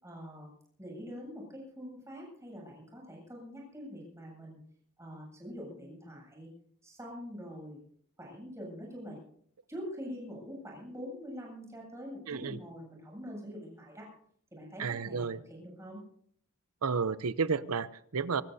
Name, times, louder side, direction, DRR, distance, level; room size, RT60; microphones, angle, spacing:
voice 1, 0.0-0.5 0.8-4.6 5.0-6.5 6.8-7.8 8.2-9.2 9.7-14.1 14.5-16.0, equal, 15° right, -2 dB, 8.0 m, -44 dB
voice 2, 12.3-12.6 14.8-15.4 16.8-18.4, right 5 dB, 80° right, 16 dB, 0.7 m, -32 dB
24.0 x 19.0 x 2.8 m, 0.64 s
head